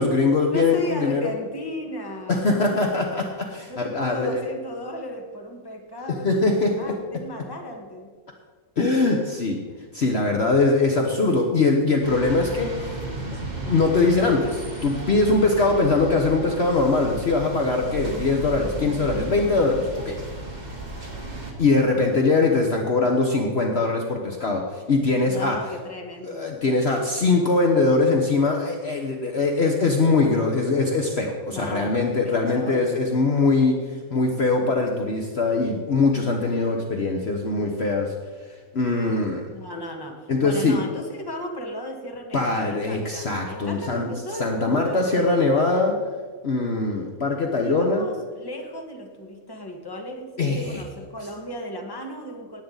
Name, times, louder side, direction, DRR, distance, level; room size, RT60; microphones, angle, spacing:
voice 1, 0.0-1.3 2.3-4.4 6.2-6.9 8.8-9.6 9.9-20.2 21.6-25.6 26.2-38.2 38.7-39.4 40.3-40.8 42.3-44.1 44.4-46.0 46.4-48.0 50.4-50.8, left 3 dB, 50° left, 2 dB, 1.2 m, -22 dB
voice 2, 0.5-3.2 3.7-8.1 25.3-26.6 31.5-33.0 39.5-45.5 47.6-52.6, equal, 15° left, 2 dB, 1.4 m, -36 dB
sound 1, 12.0-21.5, right 2 dB, 30° right, 1.9 m, -34 dB
18.0 x 8.5 x 3.9 m, 1.5 s
omnidirectional pair, 1.5 m